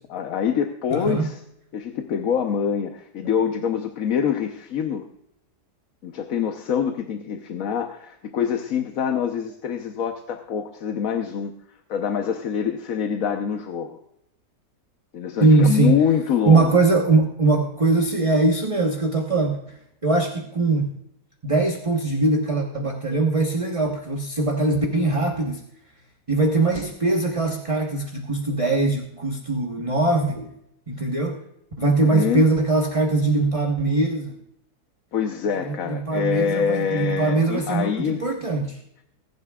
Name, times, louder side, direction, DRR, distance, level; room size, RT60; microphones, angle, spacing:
voice 1, 0.1-1.4 1.7-5.0 6.0-11.5 11.9-14.0 15.1-16.8 31.8-32.4 35.1-38.2, left 7 dB, 60° left, 5 dB, 1.3 m, -25 dB
voice 2, 0.9-1.3 15.4-16.0 16.5-19.6 20.0-20.9 21.4-25.6 26.3-30.5 30.9-31.4 31.8-34.3 35.6-38.8, right 3 dB, 25° right, 1 dB, 1.1 m, -21 dB
20.5 x 11.0 x 2.4 m, 0.77 s
omnidirectional pair, 1.7 m